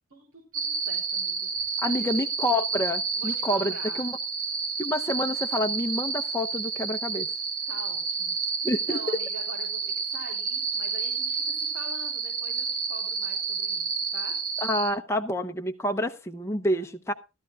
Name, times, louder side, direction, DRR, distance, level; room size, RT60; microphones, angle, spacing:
voice 1, 0.1-2.2 3.2-4.0 7.7-14.4 16.7-16.9, right 2 dB, 70° right, 0 dB, 3.6 m, -45 dB
sound 1, 0.5-14.9, right 5 dB, 40° right, 1.4 m, -30 dB
voice 2, 1.8-4.2 4.8-7.3 8.6-9.0 14.6-17.1, left 1 dB, 10° left, 5 dB, 0.7 m, -28 dB
17.0 x 12.5 x 2.4 m, 0.29 s
head